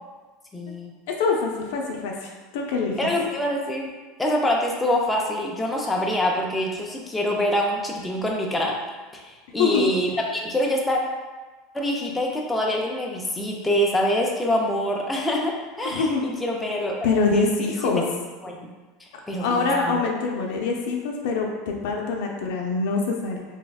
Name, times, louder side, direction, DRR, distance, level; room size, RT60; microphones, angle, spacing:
voice 1, 0.5-0.9 3.0-3.9 4.2-8.8 9.1-11.0 11.7-17.0 17.3-17.9 18.4-18.7 19.3-20.0, left 1 dB, 10° left, -1 dB, 0.3 m, -25 dB
voice 2, 1.2-3.0 9.6-9.9 15.8-16.2 17.0-18.0 19.4-23.4, left 4 dB, 75° left, 0 dB, 0.4 m, -24 dB
3.3 x 2.1 x 2.3 m, 1.3 s
supercardioid pair, 135°, 0 cm